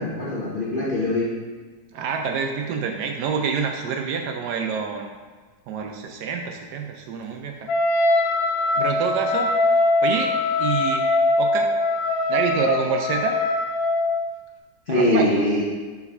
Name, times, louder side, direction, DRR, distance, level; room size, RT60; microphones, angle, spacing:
voice 1, 0.0-1.3 14.9-15.6, left 1 dB, 70° left, -5 dB, 0.5 m, -22 dB
voice 2, 1.9-5.1 5.7-7.5 8.8-10.3 10.6-11.0 11.4-11.7 12.3-13.4 14.9-15.4, right 5 dB, 70° right, 3 dB, 1.0 m, -27 dB
Wind instrument woodwind instrument, 7.7-14.3, left 2 dB, 85° left, 1.3 m, -22 dB
4.7 x 4.1 x 5.3 m, 1.4 s
omnidirectional pair, 2.1 m